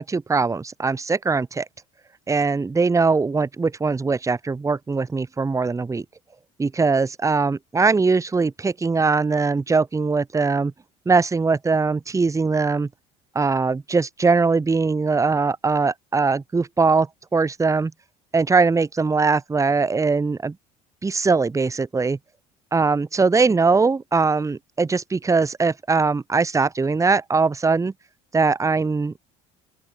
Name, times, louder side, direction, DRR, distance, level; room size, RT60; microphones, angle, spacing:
voice 1, 0.0-1.7 2.3-6.0 6.6-10.7 11.0-12.9 13.3-17.9 18.3-20.5 21.0-22.2 22.7-27.9 28.3-29.1, right 4 dB, 20° right, 1.5 m, -21 dB
open air
supercardioid pair, 90°, 17 cm